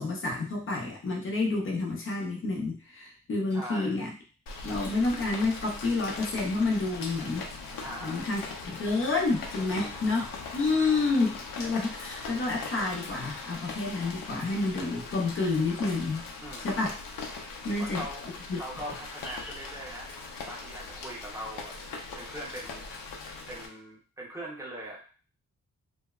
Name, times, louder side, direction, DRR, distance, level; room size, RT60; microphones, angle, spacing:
voice 1, 0.0-4.1 4.6-7.4 8.0-10.3 10.5-16.2 16.6-17.0 17.6-18.0 18.5-18.6, left 3 dB, 40° left, 0 dB, 0.6 m, -29 dB
voice 2, 3.5-4.0 7.8-8.4 9.8-10.0 16.4-16.7 17.7-18.2 18.5-20.1 20.5-21.8 22.1-22.8 23.5-25.1, equal, 10° right, -4 dB, 0.6 m, -41 dB
Rain, 4.5-23.7, left 4 dB, 85° left, 0.6 m, -40 dB
2.7 x 2.1 x 2.3 m, 0.37 s
wide cardioid pair, 175°, 33 cm